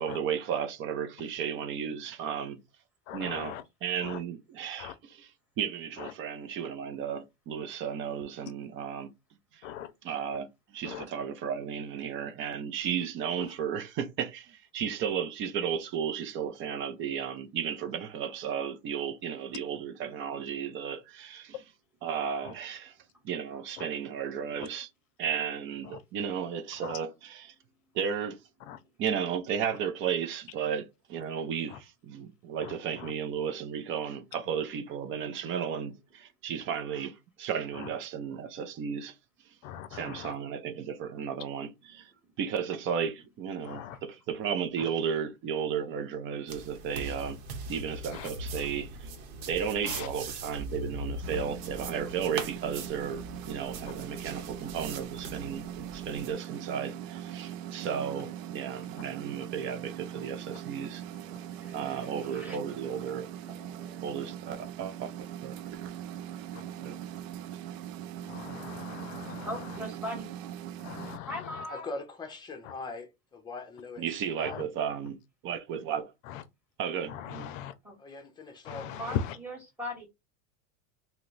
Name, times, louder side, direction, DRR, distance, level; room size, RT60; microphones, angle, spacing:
voice 1, 0.0-2.6 3.1-5.3 5.6-9.1 9.5-9.7 10.0-10.5 10.7-21.6 22.0-23.0 23.2-24.9 25.2-27.5 27.9-28.4 29.0-39.2 39.5-39.6 39.9-42.1 42.4-47.4 47.7-49.1 49.5-61.0 61.7-63.5 64.0-65.9 66.8-67.0 74.0-75.2 75.4-76.1 76.8-77.5, right 7 dB, 30° right, 0.5 m, -34 dB
voice 2, 3.1-3.6 4.0-4.2 4.8-4.9 6.0-6.1 9.6-9.9 10.8-11.1 22.4-22.5 23.8-23.9 24.6-24.7 26.8-27.0 28.7-28.8 31.7-31.8 32.6-32.7 33.0-33.1 37.7-37.9 39.6-40.3 43.6-44.0 44.8-44.9 48.1-48.3 49.8-50.1 66.5-66.6 68.3-69.5 70.8-71.6 74.4-74.6 76.3-76.4 77.1-77.7 78.6-79.3, left 9 dB, 80° left, 0.6 m, -39 dB
sound 1, 46.5-56.3, right 2 dB, 60° right, 1.0 m, -41 dB
voice 3, 48.4-49.5 59.8-59.9 60.5-60.9 61.1-64.1 69.4-70.3 71.3-71.9 77.8-78.0 78.9-80.1, equal, 5° right, 1.5 m, -42 dB
sound 2, 51.2-71.2, right 10 dB, 80° right, 0.5 m, -41 dB
voice 4, 71.7-74.0 74.4-74.6 78.0-78.9, left 3 dB, 10° left, 0.7 m, -41 dB
2.8 x 2.2 x 3.8 m
supercardioid pair, 140°, 39 cm